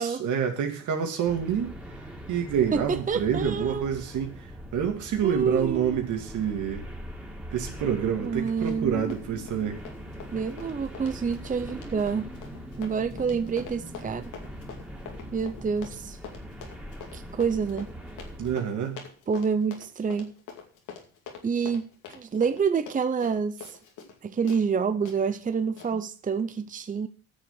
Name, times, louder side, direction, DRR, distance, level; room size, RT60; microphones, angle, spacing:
voice 1, 0.0-1.8 2.3-4.4 4.7-6.9 7.5-9.8 18.4-19.0, right 8 dB, 80° right, 2.4 m, -27 dB
sound 1, 1.3-18.6, equal, 5° right, 2.8 m, -42 dB
voice 2, 2.7-3.9 5.2-6.0 8.2-9.1 10.3-12.3 12.8-14.3 15.3-16.2 17.1-17.9 19.3-20.3 21.4-21.8 22.1-23.6 24.2-27.1, right 6 dB, 25° right, 0.7 m, -28 dB
Run, 8.6-8.9 9.1-24.2 24.5-24.6 25.1-25.2 25.8-25.9, left 7 dB, 90° left, 2.5 m, -45 dB
9.6 x 6.8 x 7.2 m
cardioid pair, 90°, 30 cm